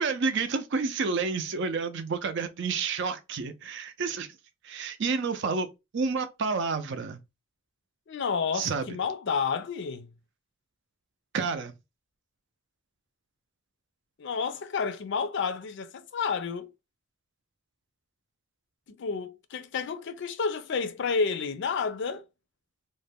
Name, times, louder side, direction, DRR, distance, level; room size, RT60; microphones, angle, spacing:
voice 1, 0.0-4.3 4.6-5.7 5.9-7.2 8.5-8.9 11.3-11.7, right 4 dB, 55° right, 0.4 m, -29 dB
voice 2, 8.1-10.1 14.2-16.7 18.9-22.3, left 5 dB, 60° left, 0.4 m, -30 dB
2.5 x 2.1 x 3.4 m
head